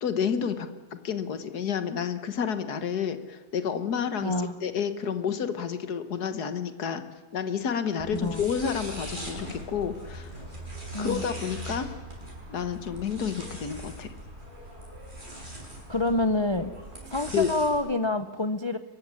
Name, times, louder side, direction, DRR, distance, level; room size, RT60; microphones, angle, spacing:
voice 1, 0.0-7.0 7.3-10.3 11.0-11.9 12.5-14.1 17.3-17.5, left 7 dB, 70° left, 10 dB, 1.8 m, -30 dB
voice 2, 4.2-4.6 8.1-8.4 10.9-11.2 15.9-16.7 17.0-18.8, left 2 dB, 35° left, 10 dB, 0.4 m, -27 dB
sound 1, 8.0-17.7, right 1 dB, 30° right, 6.0 m, -41 dB
23.5 x 14.0 x 9.7 m, 1.5 s
omnidirectional pair, 1.8 m